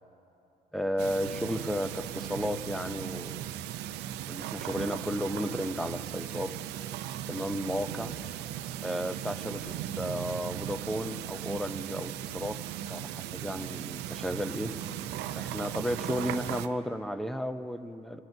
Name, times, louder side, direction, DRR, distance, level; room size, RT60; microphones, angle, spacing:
voice 1, 0.7-3.5 4.3-6.5 7.3-8.2 8.8-12.6 12.9-14.7 15.3-18.2, equal, ahead, 10 dB, 0.5 m, -33 dB
sound 1, 1.0-16.7, right 12 dB, 85° right, 0.5 m, -37 dB
25.0 x 11.5 x 2.7 m, 2.8 s
cardioid pair, 110°, 17 cm